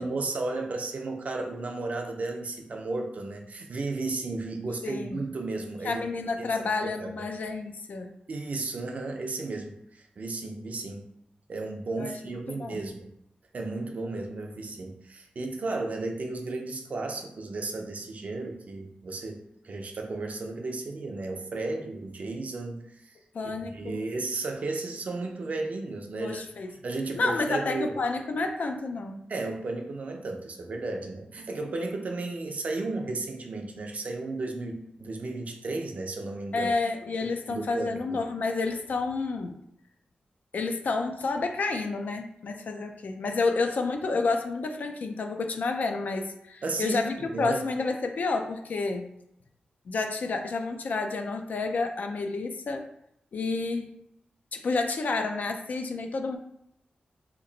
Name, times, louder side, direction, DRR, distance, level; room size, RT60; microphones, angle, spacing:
voice 1, 0.0-6.0 6.4-7.2 8.3-11.1 11.5-13.1 13.5-23.2 23.4-26.4 26.8-28.0 29.3-36.7 37.5-38.2 46.6-47.6, right 3 dB, 50° right, 3 dB, 0.5 m, -34 dB
voice 2, 4.8-5.2 5.8-8.1 12.0-12.1 12.5-12.9 23.3-24.0 26.1-26.7 27.2-29.2 36.5-39.6 40.5-49.1 49.9-52.9 53.3-54.0 54.5-56.4, left 3 dB, 60° left, 5 dB, 0.4 m, -30 dB
2.9 x 2.5 x 3.9 m, 0.77 s
wide cardioid pair, 130°, 3 cm